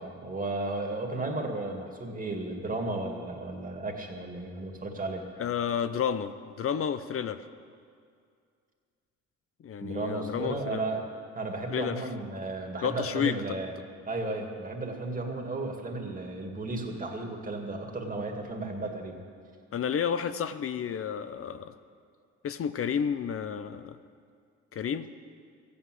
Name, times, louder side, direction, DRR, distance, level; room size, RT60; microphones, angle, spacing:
voice 1, 0.0-5.3 9.8-11.1 11.3-13.7 14.0-19.2, right 2 dB, 25° right, 2 dB, 2.2 m, -34 dB
voice 2, 5.4-7.4 9.6-10.8 11.7-12.0 12.8-13.6 19.7-21.7 22.4-24.0 24.7-25.1, left 7 dB, 50° left, 12 dB, 0.6 m, -31 dB
14.0 x 8.6 x 7.7 m, 2.2 s
cardioid pair, 90°, 30 cm